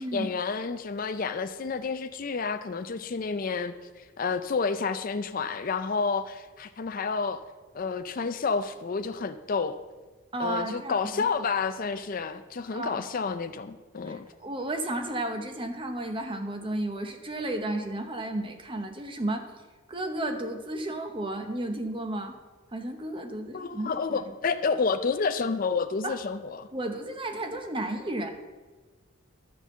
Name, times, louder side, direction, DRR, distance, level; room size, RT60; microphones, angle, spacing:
voice 1, 0.0-7.4 7.7-9.8 10.4-14.3 23.5-26.7, left 5 dB, 40° left, 9 dB, 0.4 m, -30 dB
voice 2, 10.3-11.3 12.7-13.0 14.1-19.5 19.9-22.4 22.7-24.3 26.0-26.2 26.7-28.3, right 1 dB, 25° right, 6 dB, 0.8 m, -33 dB
10.5 x 5.3 x 7.3 m, 1.3 s
head